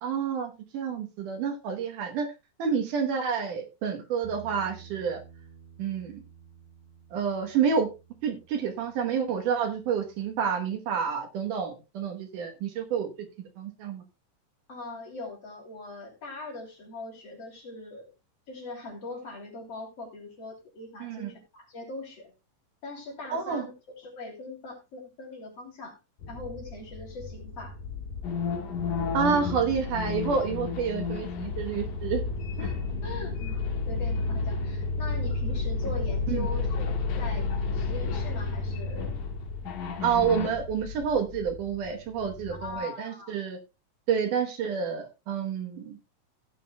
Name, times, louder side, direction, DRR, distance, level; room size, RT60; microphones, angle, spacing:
voice 1, 0.0-2.3 2.6-5.2 5.8-6.2 7.1-7.9 8.2-13.1 13.6-14.0 21.0-21.3 23.3-23.7 29.1-32.2 32.6-32.7 36.3-36.5 40.0-43.6 44.1-46.0, right 6 dB, 70° right, 4 dB, 2.6 m, -29 dB
Bass guitar, 4.2-10.5, right 6 dB, 15° right, 2.3 m, -52 dB
voice 2, 14.7-18.1 18.5-22.3 22.8-26.0 26.3-27.8 29.3-29.5 33.0-36.9 37.2-39.2 42.5-43.4, left 2 dB, 45° left, 1 dB, 3.9 m, -41 dB
sound 1, 26.2-42.8, left 3 dB, 80° left, 4.4 m, -33 dB
sound 2, 28.2-33.1 33.4-35.0 35.3-35.5 35.8-39.3 39.7-40.5, left 6 dB, 65° left, 2.9 m, -36 dB
16.5 x 9.3 x 2.3 m, 0.25 s
omnidirectional pair, 4.1 m